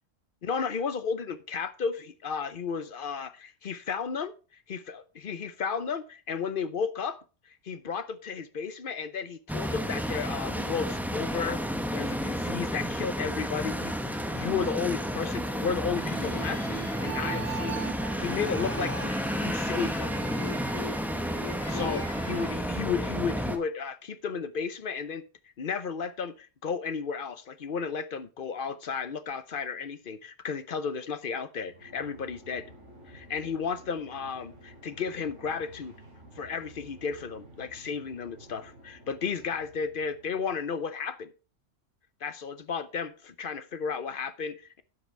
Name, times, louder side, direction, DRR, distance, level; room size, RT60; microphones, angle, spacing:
voice 1, 0.4-4.3 4.7-11.6 11.9-20.1 21.7-25.2 25.6-32.7 33.1-35.9 36.4-41.3 42.2-44.8, left 6 dB, 50° left, 0.8 m, -33 dB
sound 1, 9.5-23.6, equal, ahead, 0.9 m, -31 dB
sound 2, 15.9-22.5, right 1 dB, 55° right, 4.3 m, -38 dB
sound 3, 31.7-40.6, right 1 dB, 70° right, 3.5 m, -52 dB
12.0 x 7.8 x 3.3 m
omnidirectional pair, 1.3 m